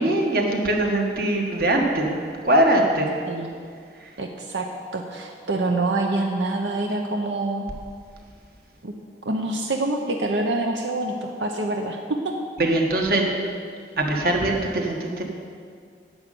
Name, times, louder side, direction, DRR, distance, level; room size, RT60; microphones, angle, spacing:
voice 1, 0.0-2.2 2.4-3.2 3.9-4.1 12.6-13.3 14.0-15.2, right 1 dB, 55° right, 1 dB, 1.5 m, -22 dB
voice 2, 4.2-7.7 8.8-8.9 9.2-12.3, right 2 dB, 90° right, 2 dB, 0.9 m, -26 dB
10.5 x 6.6 x 9.2 m, 2.2 s
head